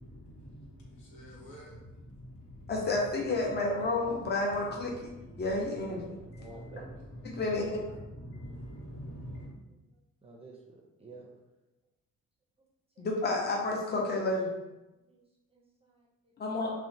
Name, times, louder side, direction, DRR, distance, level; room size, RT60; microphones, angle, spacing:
voice 1, 0.0-3.1 3.4-9.6, equal, 80° left, 1.0 m, -47 dB
voice 2, 2.7-5.1 5.4-6.2 7.2-7.8 13.0-14.5 16.4-16.7, left 2 dB, 35° left, 0.6 m, -30 dB
voice 3, 6.4-6.9 10.2-11.3 13.0-13.1 15.1-15.2 15.5-16.1, right 3 dB, 20° right, 0.5 m, -50 dB
2.7 x 2.1 x 2.6 m
cardioid pair, 90°, 30 cm